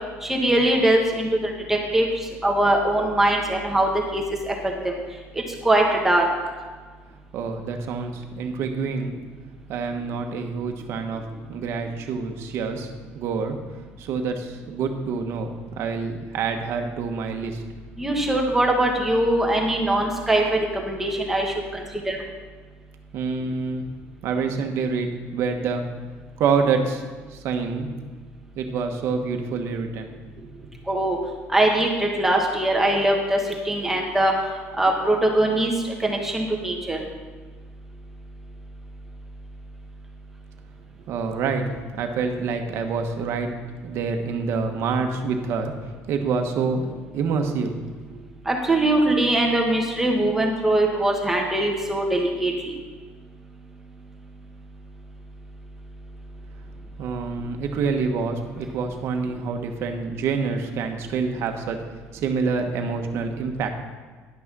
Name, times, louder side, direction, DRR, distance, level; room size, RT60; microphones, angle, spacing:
voice 1, 0.2-2.1 2.4-4.5 4.8-5.0 5.6-6.2 18.0-21.4 21.7-22.2 30.9-31.2 31.5-33.4 33.6-34.3 34.8-35.7 36.0-37.0 48.5-52.7, right 1 dB, 5° right, 0 dB, 1.4 m, -21 dB
voice 2, 7.3-9.1 9.7-11.2 11.5-12.9 13.1-13.6 14.0-15.5 15.7-17.6 23.1-23.8 24.2-25.8 26.4-27.0 27.3-27.9 28.6-30.1 30.4-30.5 41.0-41.7 42.0-43.5 43.8-45.7 46.1-47.8 48.1-48.2 57.0-61.8 62.1-63.7, right 5 dB, 55° right, 4 dB, 1.2 m, -27 dB
10.5 x 6.1 x 6.1 m, 1.4 s
cardioid pair, 155°, 5 cm